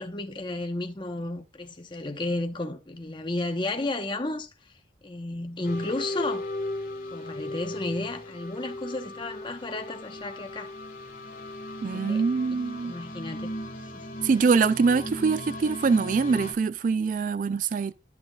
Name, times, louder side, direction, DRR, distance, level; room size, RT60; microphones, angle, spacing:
voice 1, 0.0-4.5 5.0-6.5 7.1-10.7 11.9-12.2 12.8-13.5 13.9-14.0, left 2 dB, 25° left, 0.9 m, -33 dB
sound 1, 5.6-16.5, left 1 dB, 50° left, 1.8 m, -37 dB
voice 2, 11.8-12.9 14.2-17.9, right 5 dB, 45° right, 0.3 m, -24 dB
12.5 x 6.4 x 2.3 m
head